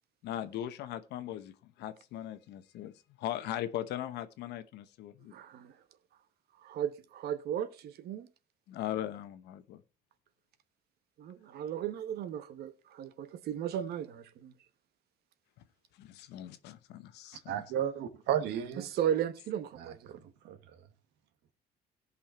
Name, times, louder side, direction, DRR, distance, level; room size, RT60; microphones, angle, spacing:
voice 1, 0.2-5.3 8.7-9.8 16.0-17.7, left 12 dB, 80° left, 1.0 m, -39 dB
voice 2, 5.3-5.7 6.6-8.3 11.2-14.5 18.8-20.2, right 10 dB, 70° right, 1.1 m, -35 dB
voice 3, 17.5-18.9 19.8-20.2 20.4-20.6, right 10 dB, 85° right, 1.4 m, -33 dB
17.0 x 5.6 x 4.3 m
cardioid pair, 110°, 17 cm